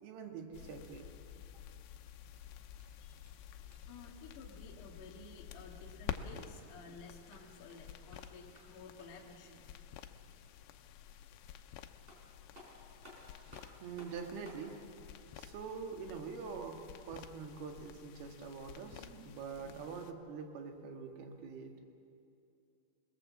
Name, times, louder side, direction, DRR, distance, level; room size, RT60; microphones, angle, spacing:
voice 1, 0.0-1.4 13.1-14.7 15.3-21.7, right 5 dB, 70° right, 4 dB, 3.4 m, -45 dB
sound 1, 0.5-20.1, left 9 dB, 85° left, 2.9 m, -51 dB
sound 2, 2.8-4.1 7.1-9.3 11.6-11.7 12.1-14.7, left 1 dB, 15° right, 4.0 m, -58 dB
voice 2, 3.9-9.7, left 3 dB, 55° left, -1 dB, 2.8 m, -53 dB
26.5 x 19.5 x 7.4 m, 2.6 s
omnidirectional pair, 4.8 m